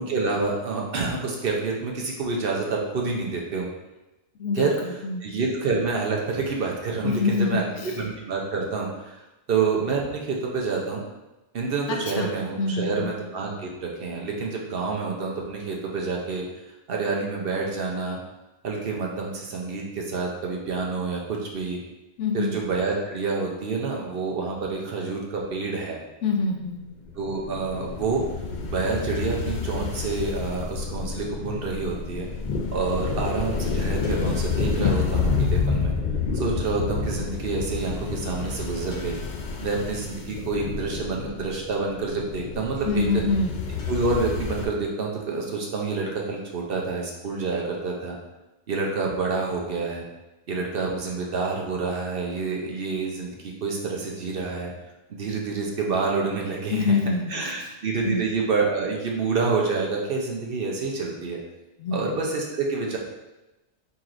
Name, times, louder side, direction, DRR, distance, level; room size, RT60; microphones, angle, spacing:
voice 1, 0.0-3.7 4.5-4.7 5.2-9.2 9.5-11.0 11.5-16.4 16.9-18.2 18.6-21.8 22.3-26.0 27.2-28.2 28.7-32.3 32.7-35.9 36.3-39.2 39.6-43.0 43.9-48.2 48.7-50.1 50.5-54.7 55.1-57.0 57.3-61.4 61.9-63.0, right 4 dB, 60° right, -1 dB, 0.8 m, -28 dB
voice 2, 4.4-5.3 7.0-7.9 11.9-12.3 12.6-13.1 22.2-22.6 26.2-26.8 42.9-43.5 56.7-57.7 58.0-58.2 61.8-62.1, left 4 dB, 85° left, 2 dB, 0.9 m, -26 dB
sound 1, 27.1-44.7, left 5 dB, 55° left, 0.6 m, -29 dB
4.5 x 3.9 x 2.5 m, 1.0 s
omnidirectional pair, 1.2 m